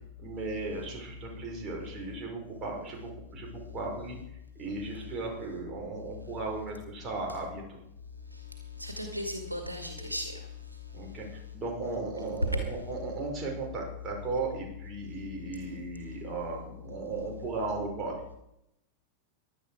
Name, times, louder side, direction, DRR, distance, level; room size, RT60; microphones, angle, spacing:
voice 1, 0.2-4.2 4.6-7.6 10.9-18.2, right 3 dB, 25° right, 0 dB, 5.4 m, -36 dB
voice 2, 8.8-10.5, left 1 dB, 85° right, 4 dB, 2.1 m, -36 dB
16.0 x 12.0 x 4.9 m, 0.81 s
figure-of-eight pair, 90°, 0 cm